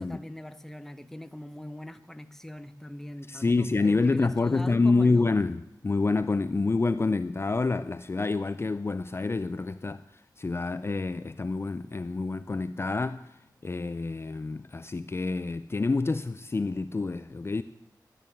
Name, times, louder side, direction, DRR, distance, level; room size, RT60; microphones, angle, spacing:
voice 1, 0.0-5.4, left 1 dB, 5° left, 0.8 m, -42 dB
voice 2, 3.3-10.0 10.4-13.3 13.6-17.6, left 3 dB, 35° left, 0.4 m, -27 dB
12.5 x 10.0 x 9.0 m
wide cardioid pair, 110°, 8 cm